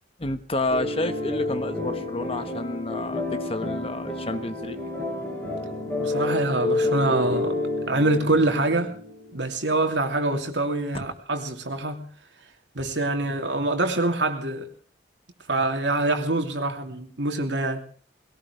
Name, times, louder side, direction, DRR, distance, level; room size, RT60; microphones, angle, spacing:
voice 1, 0.2-4.8 10.9-11.0, left 2 dB, 30° left, 1.3 m, -30 dB
sound 1, 0.7-9.4, left 2 dB, 10° left, 6.2 m, -29 dB
voice 2, 6.0-7.6 7.9-8.9 9.3-12.1 12.7-14.7 15.5-17.8, right 2 dB, 85° right, 2.9 m, -25 dB
21.0 x 18.5 x 3.3 m
head